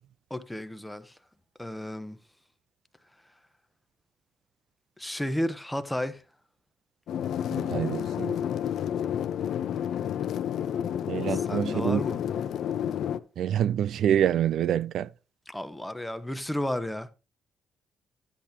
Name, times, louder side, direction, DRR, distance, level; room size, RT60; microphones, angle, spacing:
voice 1, 0.3-1.1 1.6-2.2 5.0-6.2 11.3-12.2 15.5-17.1, left 1 dB, 5° left, 1.0 m, -33 dB
sound 1, 7.1-13.2, left 9 dB, 70° left, 0.6 m, -30 dB
voice 2, 7.6-8.3 11.1-12.0 13.4-15.1, right 10 dB, 75° right, 0.4 m, -26 dB
10.5 x 10.0 x 2.8 m
cardioid pair, 90°, 0 cm